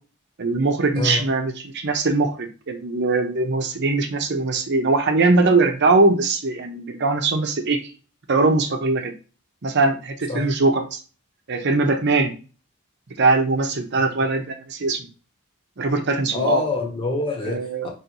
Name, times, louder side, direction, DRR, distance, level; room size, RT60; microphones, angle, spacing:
voice 1, 0.4-7.8 8.3-9.1 9.6-11.0 11.5-12.3 13.2-15.1 15.8-16.6 17.5-17.9, right 3 dB, 55° right, 5 dB, 0.8 m, -21 dB
voice 2, 0.9-1.3 10.3-10.5 16.3-17.9, left 3 dB, 25° left, 0 dB, 1.4 m, -26 dB
5.2 x 3.1 x 3.0 m, 0.35 s
head